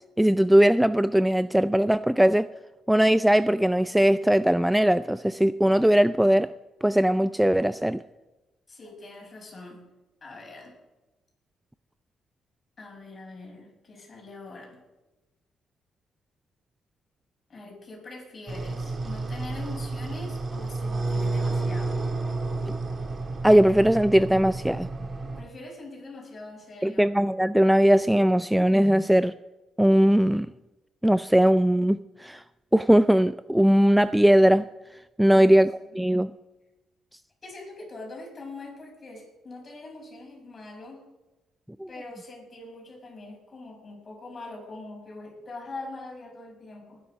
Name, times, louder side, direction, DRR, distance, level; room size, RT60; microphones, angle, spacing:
voice 1, 0.2-2.5 2.9-6.5 6.8-8.0 23.4-24.9 26.8-29.3 29.8-30.5 31.0-32.4 32.7-34.7 35.2-36.3 41.8-41.9, equal, 5° right, 14 dB, 0.4 m, -20 dB
voice 2, 8.7-9.8 10.2-10.8 12.8-14.8 17.5-22.0 25.0-27.1 35.3-35.6 37.4-41.0 41.9-47.0, left 2 dB, 35° left, 0 dB, 6.7 m, -43 dB
sound 1, 18.5-25.4, right 3 dB, 35° right, 2.3 m, -31 dB
20.0 x 10.5 x 5.2 m, 1.0 s
cardioid pair, 90°, 0 cm